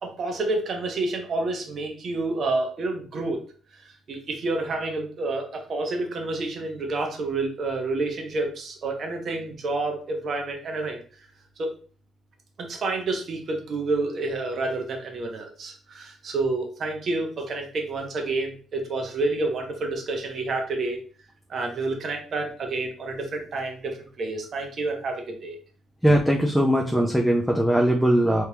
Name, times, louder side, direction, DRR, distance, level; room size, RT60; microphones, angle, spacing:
voice 1, 0.0-3.4 3.8-11.0 11.6-11.8 12.6-21.0 21.5-25.6, right 2 dB, 55° right, 2 dB, 1.0 m, -29 dB
voice 2, 26.0-28.4, equal, ahead, 0 dB, 0.6 m, -20 dB
3.4 x 3.2 x 2.9 m, 0.40 s
cardioid pair, 90°, 0 cm